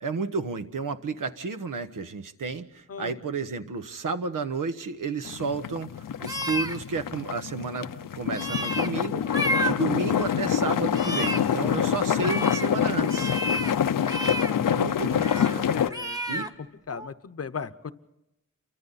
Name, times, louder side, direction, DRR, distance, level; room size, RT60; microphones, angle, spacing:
voice 1, 0.0-5.9 6.2-13.3 14.7-15.7 16.3-16.5, right 4 dB, 75° right, 9 dB, 1.3 m, -32 dB
sound 1, 5.2-15.9, left 9 dB, 80° left, 0.7 m, -26 dB
sound 2, 6.2-6.8 8.3-8.9 9.2-9.7 10.1-10.4 10.8-11.4 12.0-12.7 13.0-13.7 14.0-14.5 15.1-15.6 15.9-16.5 16.9-17.1, equal, 10° right, 1.2 m, -31 dB
voice 2, 15.7-16.4 16.9-17.9, left 6 dB, 45° left, 12 dB, 0.9 m, -37 dB
29.0 x 24.0 x 4.2 m, 0.89 s
wide cardioid pair, 170°, 32 cm